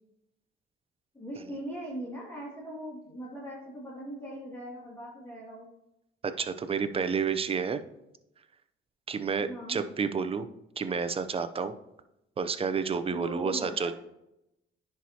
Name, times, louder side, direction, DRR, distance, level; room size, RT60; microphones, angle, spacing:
voice 1, 1.1-5.7 9.4-9.8 13.1-13.9, equal, 15° left, -7 dB, 2.5 m, -40 dB
voice 2, 6.2-7.8 9.1-10.5 10.8-11.7 12.4-13.9, right 5 dB, 30° right, 10 dB, 0.6 m, -30 dB
10.0 x 4.7 x 2.9 m, 0.88 s
cardioid pair, 90°, 20 cm